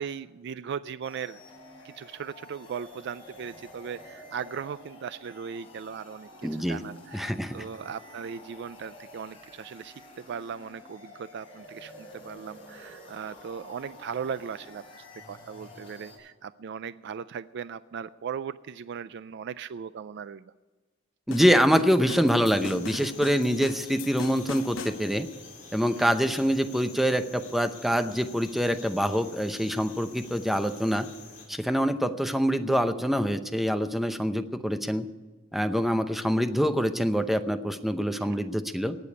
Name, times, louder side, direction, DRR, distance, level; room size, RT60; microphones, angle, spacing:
voice 1, 0.0-1.4 1.8-6.3 6.6-9.9 10.3-20.5 26.0-26.1 38.2-38.5, right 7 dB, 60° right, 15 dB, 0.4 m, -38 dB
sound 1, 1.0-16.2, left 1 dB, 25° left, 6.8 m, -49 dB
voice 2, 6.4-6.8 7.1-7.6 21.3-25.3 25.7-31.1 31.5-35.1 35.5-39.0, equal, ahead, 9 dB, 0.7 m, -25 dB
sound 2, 21.3-25.0, left 3 dB, 80° left, 1.0 m, -39 dB
sound 3, 22.5-31.5, left 4 dB, 45° left, 4.2 m, -48 dB
18.5 x 7.0 x 9.4 m, 1.3 s
head